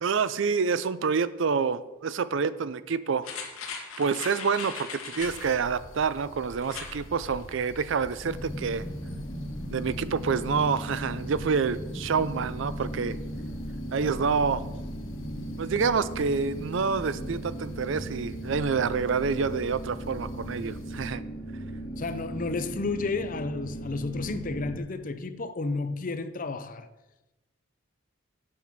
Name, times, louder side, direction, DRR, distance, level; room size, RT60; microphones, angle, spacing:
voice 1, 0.0-3.3 4.0-8.8 9.7-13.2 13.9-14.6 15.6-21.2, right 5 dB, 60° right, 0.4 m, -27 dB
sound 1, 3.2-5.6 6.6-7.0 7.4-7.5, left 5 dB, 90° left, 1.8 m, -38 dB
sound 2, 5.2-21.1, left 1 dB, 65° left, 0.9 m, -46 dB
sound 3, 8.2-24.8, right 1 dB, 20° left, 1.3 m, -37 dB
voice 2, 22.0-26.9, left 3 dB, 40° left, 0.6 m, -32 dB
8.6 x 7.3 x 5.9 m
head